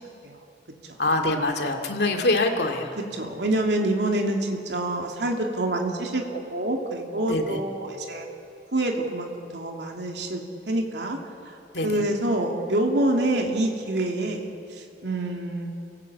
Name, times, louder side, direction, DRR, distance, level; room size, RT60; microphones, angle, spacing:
voice 1, 1.0-2.9 7.3-7.6 11.7-11.9, left 2 dB, 70° left, 3 dB, 2.4 m, -24 dB
voice 2, 3.1-8.3 8.7-11.2 11.5-11.6 11.8-14.5 14.8-15.7, right 1 dB, 75° right, 1 dB, 2.8 m, -26 dB
28.5 x 18.0 x 8.5 m, 2.6 s
head